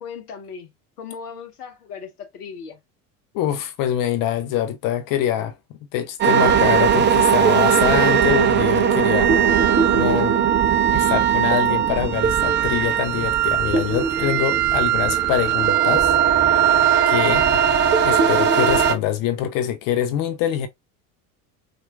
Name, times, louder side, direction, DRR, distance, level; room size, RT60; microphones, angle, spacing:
voice 1, 0.0-0.7 1.0-2.8, left 6 dB, 85° left, 0.8 m, -37 dB
voice 2, 3.3-5.5 5.9-9.3 9.9-10.4 10.9-16.1 16.5-16.6 17.1-17.5 18.0-20.7, left 10 dB, 50° left, 0.5 m, -24 dB
sound 1, 6.2-18.9, right 8 dB, 25° right, 0.5 m, -18 dB
4.2 x 2.5 x 2.2 m
hypercardioid pair, 75°, 45 cm